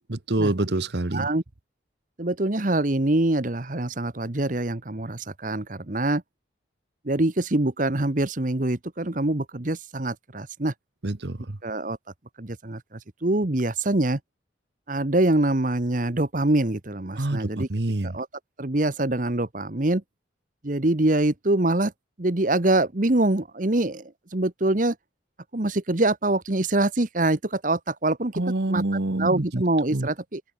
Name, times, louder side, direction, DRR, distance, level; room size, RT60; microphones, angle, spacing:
voice 1, 0.1-1.3 11.0-11.6 17.2-18.1 28.3-29.6 29.9-30.1, right 2 dB, 60° right, 1.2 m, -26 dB
voice 2, 1.1-1.4 2.2-6.2 7.0-10.7 11.6-12.0 12.4-14.2 14.9-17.7 18.0-18.3 18.6-20.0 20.6-21.9 22.2-25.0 25.5-28.3 28.7-30.4, right 2 dB, 45° right, 1.2 m, -24 dB
head